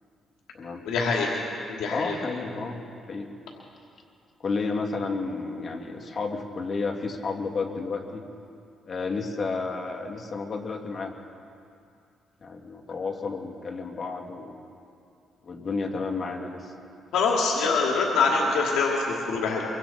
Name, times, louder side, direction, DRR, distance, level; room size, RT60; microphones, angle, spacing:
voice 1, 0.9-1.4 1.7-2.1 17.1-19.6, left 4 dB, 85° left, -2 dB, 2.6 m, -24 dB
voice 2, 1.9-2.8 3.1-3.3 4.4-8.2 8.9-11.1 12.4-14.6 15.4-16.7, left 4 dB, 45° left, 2 dB, 2.7 m, -31 dB
24.5 x 24.5 x 4.4 m, 2.5 s
cardioid pair, 90°, 0 cm